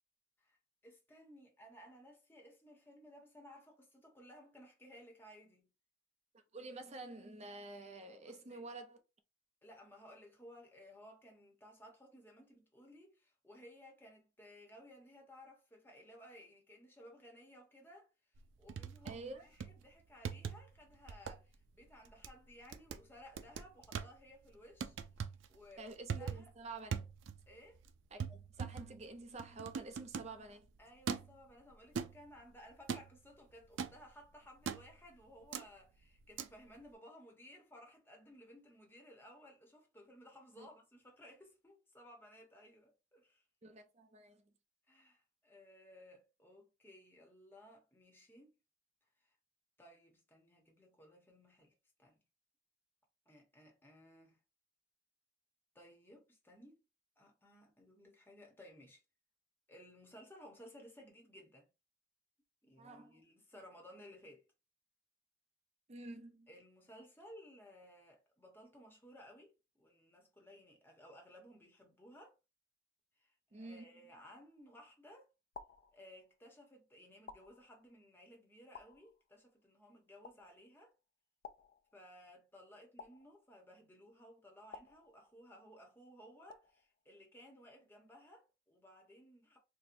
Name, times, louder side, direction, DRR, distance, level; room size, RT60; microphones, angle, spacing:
voice 1, 0.4-5.7 8.3-8.6 9.6-18.1 18.6-25.0 25.5-26.5 27.5-27.8 30.8-43.4 44.9-48.6 49.2-49.3 49.8-51.7 52.0-52.2 53.3-54.4 55.7-56.8 57.2-59.0 59.7-61.7 62.6-64.5 66.5-72.4 73.2-75.3 75.9-80.9 81.9-89.6, equal, 10° left, 0.9 m, -58 dB
voice 2, 6.5-9.0 19.0-19.4 25.8-27.0 28.1-30.7 40.6-40.7 43.6-44.4 62.8-63.1 65.9-66.5 73.5-73.9, right 3 dB, 35° right, 0.6 m, -49 dB
sound 1, 18.4-19.3 19.6-19.8 20.2-20.8 21.1-21.4 21.8-22.3 22.7-23.0 23.4-24.1 24.8-25.5 25.9-26.6 26.9-27.5 27.8-27.9 28.2-30.4 31.1-31.4 31.9-32.4 32.9-33.2 33.8-34.0 34.7-35.0 35.5-35.6 36.4-36.5, right 6 dB, 90° right, 0.4 m, -42 dB
mouth pops - wet - warehouse, 74.4-74.9 75.5-76.5 77.3-78.1 78.7-79.6 80.2-80.9 81.4-82.3 83.0-83.9 84.7-85.7 86.5-87.1, left 5 dB, 50° left, 0.3 m, -56 dB
4.3 x 2.1 x 2.6 m
head